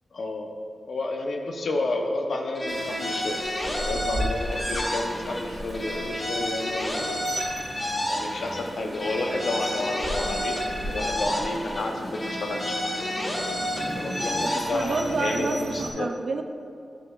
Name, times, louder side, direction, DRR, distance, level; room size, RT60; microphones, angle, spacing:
voice 1, 0.1-0.5 0.9-7.3 8.1-10.6 10.8-13.1 13.9-16.1, left 2 dB, 70° left, 2 dB, 0.7 m, -31 dB
sound 1, 2.5-5.5 5.7-8.7 8.9-11.9 12.1-15.1, equal, 30° left, 1.0 m, -30 dB
Rain, 2.7-15.9, right 1 dB, 30° right, 1.4 m, -36 dB
voice 2, 14.5-16.4, right 3 dB, 65° right, 6 dB, 0.4 m, -29 dB
11.0 x 6.6 x 2.4 m, 2.4 s
wide cardioid pair, 140°, 0 cm